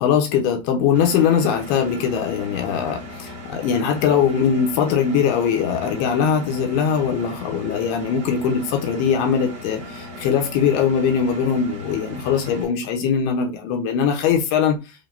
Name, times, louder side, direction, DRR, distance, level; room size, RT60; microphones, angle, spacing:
voice 1, 0.0-14.8, left 7 dB, 80° left, 2.9 m, -21 dB
Engine, 0.9-12.6, left 1 dB, 45° right, 1.3 m, -37 dB
7.3 x 2.8 x 2.6 m
omnidirectional pair, 4.6 m